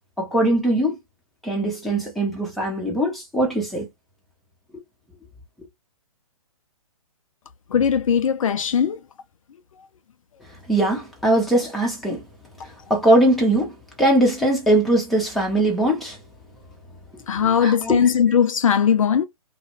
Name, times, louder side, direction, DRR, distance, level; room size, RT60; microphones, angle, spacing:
voice 1, 0.2-0.9 1.4-3.9 10.7-12.2 12.9-13.7 14.0-16.2 17.6-18.0, right 1 dB, ahead, 0.8 m, -20 dB
voice 2, 7.7-9.0 17.3-19.2, left 7 dB, 65° left, 0.5 m, -19 dB
2.4 x 2.3 x 3.0 m
hypercardioid pair, 135°, 19 cm